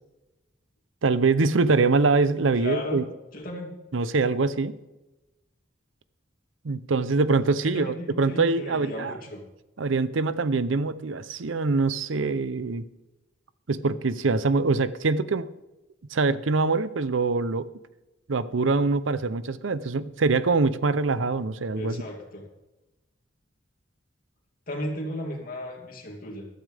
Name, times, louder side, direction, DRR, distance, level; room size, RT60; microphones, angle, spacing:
voice 1, 1.0-3.0 3.9-4.7 6.6-9.1 9.8-12.9 13.7-15.5 16.1-17.6 18.3-22.0, right 3 dB, 80° right, 16 dB, 0.7 m, -24 dB
voice 2, 2.5-3.0 3.3-3.7 7.6-9.4 21.7-22.5 24.7-26.5, left 1 dB, 50° left, 1 dB, 2.9 m, -35 dB
14.5 x 12.5 x 3.4 m, 1.0 s
head